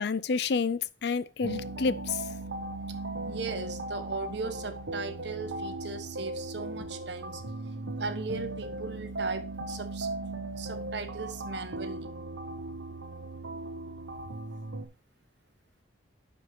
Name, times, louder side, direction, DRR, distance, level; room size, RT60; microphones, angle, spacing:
voice 1, 0.0-2.2, left 5 dB, 60° left, 0.5 m, -29 dB
sound 1, 1.4-14.9, right 2 dB, 90° right, 1.3 m, -37 dB
voice 2, 3.3-7.4 7.9-10.1 10.6-12.1, right 4 dB, 65° right, 1.3 m, -38 dB
11.5 x 5.2 x 2.9 m
head